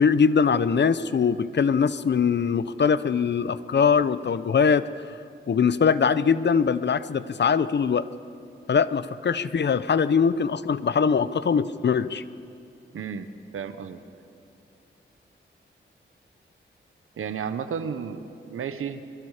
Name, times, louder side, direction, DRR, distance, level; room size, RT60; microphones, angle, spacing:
voice 1, 0.0-4.8 5.5-8.0 8.7-12.2, left 6 dB, 55° left, 15 dB, 0.8 m, -22 dB
voice 2, 12.9-13.3 13.5-14.0 17.2-19.0, right 7 dB, 85° right, 10 dB, 1.2 m, -32 dB
23.5 x 22.5 x 5.0 m, 2.6 s
cardioid pair, 70°, 21 cm